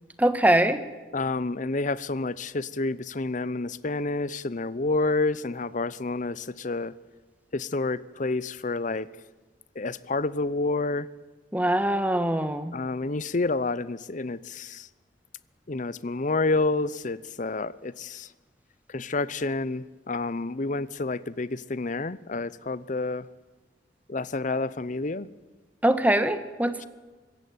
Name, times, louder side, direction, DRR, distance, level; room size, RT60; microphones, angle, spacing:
voice 1, 0.2-0.8 11.5-12.8 25.8-26.9, right 1 dB, 10° right, 1.5 m, -23 dB
voice 2, 1.1-6.9 7.5-9.1 9.8-11.1 12.7-14.9 15.7-18.3 18.9-23.3 24.1-25.3, left 3 dB, 45° left, 0.8 m, -29 dB
24.5 x 15.0 x 9.4 m
head